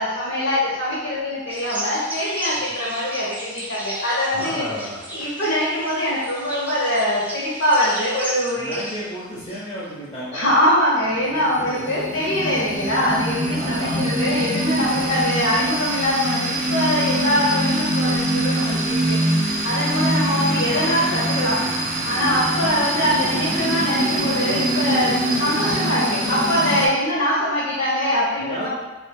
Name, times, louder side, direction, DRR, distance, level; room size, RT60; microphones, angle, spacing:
voice 1, 0.0-4.6 5.1-8.8 10.3-19.2 19.6-21.6 22.0-28.7, left 1 dB, 80° left, -9 dB, 0.8 m, -23 dB
sound 1, 1.5-9.8, equal, 10° right, 0.3 m, -34 dB
voice 2, 4.3-5.0 8.6-10.6 11.5-12.1 13.5-14.1 22.3-22.7 28.4-28.7, equal, 25° left, -7 dB, 0.6 m, -34 dB
sound 2, 11.0-26.9, right 1 dB, 50° right, 0.7 m, -24 dB
2.8 x 2.1 x 3.3 m, 1.1 s
head